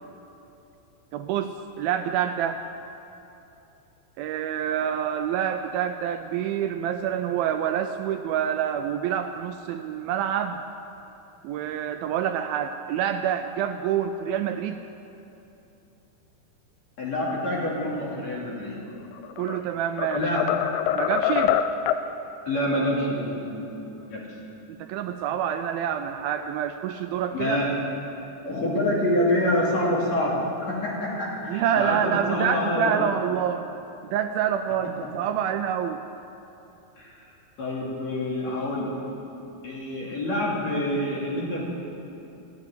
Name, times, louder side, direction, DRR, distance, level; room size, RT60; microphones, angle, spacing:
voice 1, 1.1-2.6 4.2-10.6 11.4-14.8 19.4-20.4 20.9-21.6 24.8-27.6 31.5-33.7 34.1-36.0, right 9 dB, 80° right, 7 dB, 2.2 m, -27 dB
voice 2, 17.0-18.8 20.1-20.5 22.5-24.2 27.3-27.7 28.4-33.0 37.0-37.1 37.6-39.0 39.6-41.7, left 1 dB, 45° left, -5 dB, 3.6 m, -27 dB
sound 1, 19.1-19.6 20.0-22.1, left 10 dB, 90° left, 2.6 m, -25 dB
16.0 x 8.3 x 9.8 m, 2.9 s
omnidirectional pair, 4.5 m